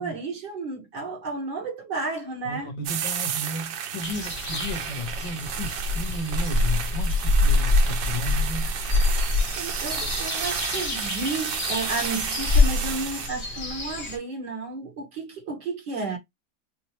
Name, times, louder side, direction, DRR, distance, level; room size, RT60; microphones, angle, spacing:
voice 1, 0.0-2.7 9.5-16.2, right 3 dB, 65° right, 2.4 m, -32 dB
voice 2, 2.4-8.8, left 1 dB, 70° left, 1.9 m, -34 dB
sound 1, 2.9-13.3, right 9 dB, 80° right, 1.5 m, -33 dB
sound 2, 4.0-14.2, left 2 dB, 35° left, 1.0 m, -25 dB
5.5 x 2.0 x 3.0 m
omnidirectional pair, 2.1 m